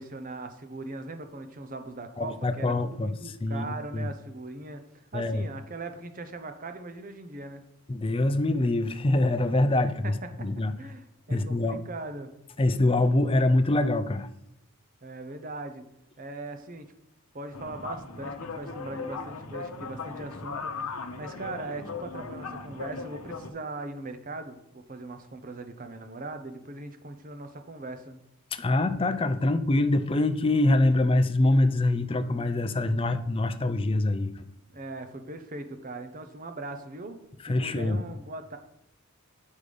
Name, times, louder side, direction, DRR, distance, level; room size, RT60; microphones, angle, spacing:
voice 1, 0.0-4.8 5.1-7.6 10.0-10.1 10.4-10.5 10.8-12.3 15.0-15.8 16.2-16.9 17.3-20.7 21.2-28.2 34.7-37.2 37.5-38.6, right 2 dB, 40° right, 8 dB, 0.8 m, -40 dB
voice 2, 2.2-3.7 3.9-4.1 5.1-5.4 7.9-10.1 10.4-10.7 11.3-11.8 12.6-14.3 28.5-34.5 37.4-38.0, left 2 dB, 25° left, 10 dB, 0.4 m, -24 dB
sound 1, 17.5-23.5, left 4 dB, 85° left, 0.8 m, -38 dB
8.0 x 5.4 x 5.0 m, 0.78 s
head